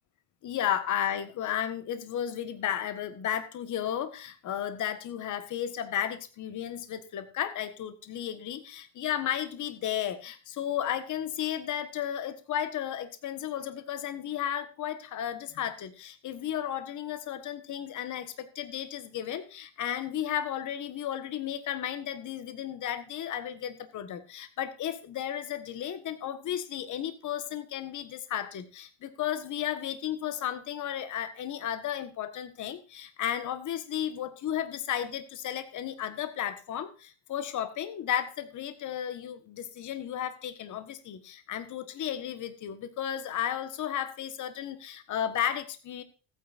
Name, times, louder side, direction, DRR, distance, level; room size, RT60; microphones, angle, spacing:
voice 1, 0.4-46.0, left 10 dB, 40° left, 10 dB, 1.5 m, -34 dB
15.0 x 9.5 x 2.6 m, 0.34 s
cardioid pair, 125°, 45 cm